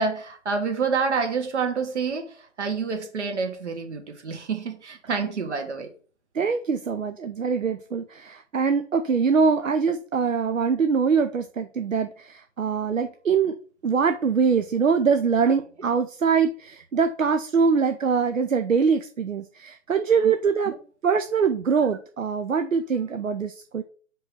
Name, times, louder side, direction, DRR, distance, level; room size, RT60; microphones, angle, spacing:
voice 1, 0.0-5.9 20.2-20.3 20.7-20.8, right 5 dB, 65° right, 2.0 m, -28 dB
voice 2, 6.3-13.6 13.8-20.7 21.0-23.8, right 5 dB, 85° right, 0.8 m, -23 dB
5.3 x 3.9 x 6.0 m
figure-of-eight pair, 135°, 38 cm